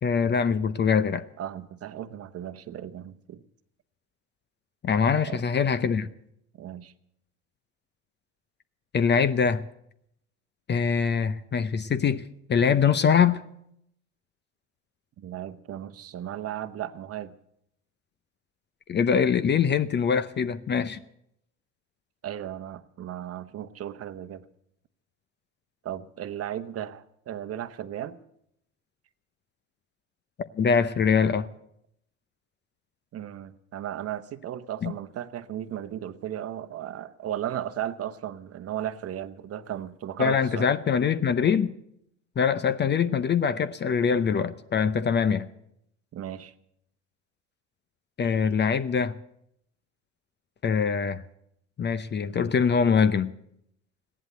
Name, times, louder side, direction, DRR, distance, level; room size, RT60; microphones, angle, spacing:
voice 1, 0.0-1.2 4.8-6.1 8.9-9.6 10.7-12.2 12.5-13.4 18.9-21.0 30.4-31.5 34.8-34.9 40.2-41.7 42.4-45.5 48.2-49.1 50.6-51.2 51.8-53.3, left 6 dB, 30° left, 14 dB, 0.7 m, -23 dB
voice 2, 1.4-3.4 5.2-5.5 6.6-6.9 15.2-17.4 22.2-24.4 25.8-28.2 33.1-40.7 46.1-46.5, right 11 dB, 40° right, 12 dB, 1.0 m, -35 dB
15.5 x 11.0 x 8.0 m, 0.75 s
hypercardioid pair, 75°, 37 cm